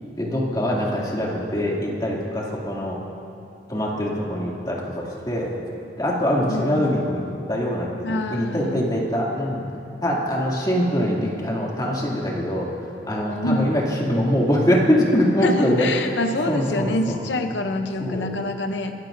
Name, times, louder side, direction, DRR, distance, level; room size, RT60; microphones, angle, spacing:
voice 1, 0.2-3.0 3.7-5.5 6.0-9.6 10.0-12.7 13.1-16.1 16.5-17.2 18.0-18.3, equal, 25° left, -4 dB, 2.5 m, -23 dB
voice 2, 6.5-7.0 8.0-8.9 13.3-13.7 15.4-18.9, left 2 dB, 90° left, 6 dB, 0.7 m, -26 dB
26.0 x 14.0 x 2.6 m, 2.5 s
head